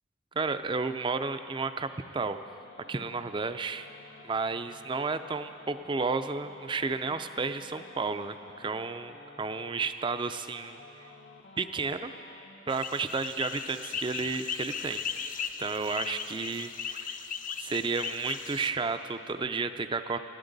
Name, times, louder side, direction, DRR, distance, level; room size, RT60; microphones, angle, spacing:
voice 1, 0.4-2.4 2.9-3.9 4.2-10.8 11.6-12.1 12.7-15.0 15.6-17.2 17.6-20.2, right 4 dB, 25° right, 10 dB, 0.4 m, -32 dB
sound 1, 1.1-12.7, left 3 dB, 70° left, 0.9 m, -53 dB
sound 2, 12.7-18.7, left 7 dB, 45° left, 0.5 m, -37 dB
20.0 x 13.0 x 4.0 m, 2.8 s
head